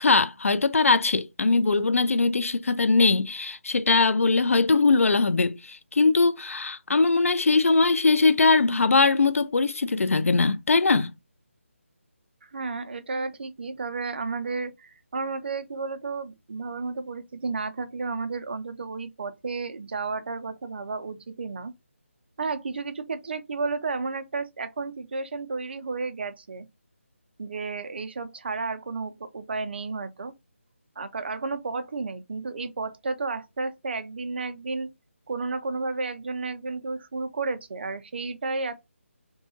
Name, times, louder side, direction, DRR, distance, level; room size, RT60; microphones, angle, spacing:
voice 1, 0.0-11.1, left 3 dB, 90° left, 0.4 m, -21 dB
voice 2, 12.4-21.7 22.4-26.7 27.4-30.3 31.0-34.9 35.3-38.8, right 4 dB, 50° right, 0.4 m, -32 dB
2.7 x 2.2 x 2.7 m
figure-of-eight pair, 165°, 7 cm